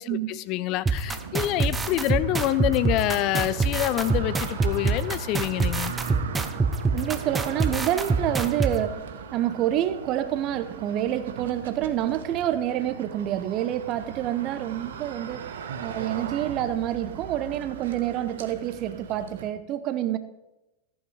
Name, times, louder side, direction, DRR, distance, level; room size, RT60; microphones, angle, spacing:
voice 1, 0.0-5.9, left 14 dB, 40° left, 0.4 m, -26 dB
sound 1, 0.9-8.7, right 4 dB, 15° right, 0.9 m, -25 dB
sound 2, 1.0-19.5, right 7 dB, 60° right, 1.2 m, -39 dB
voice 2, 6.9-15.5 15.8-20.2, right 12 dB, 35° right, 0.9 m, -28 dB
14.5 x 9.1 x 5.1 m
figure-of-eight pair, 90°, 0 cm